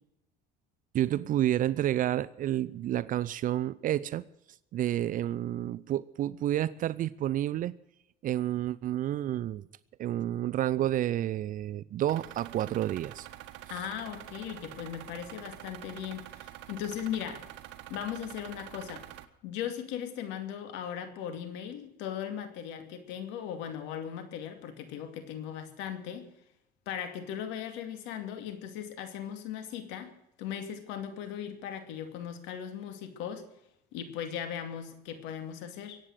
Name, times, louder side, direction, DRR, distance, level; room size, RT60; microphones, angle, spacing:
voice 1, 0.9-4.2 4.7-7.7 8.2-9.6 10.0-13.3, right 12 dB, 50° right, 17 dB, 0.6 m, -30 dB
sound 1, 12.1-19.2, right 14 dB, 80° right, 1.4 m, -46 dB
voice 2, 13.7-17.4 17.9-19.1 19.4-26.3 26.9-30.1 30.4-33.4 33.9-36.0, left 9 dB, 85° left, 8 dB, 2.5 m, -38 dB
23.0 x 9.1 x 6.5 m, 0.81 s
cardioid pair, 130°, 18 cm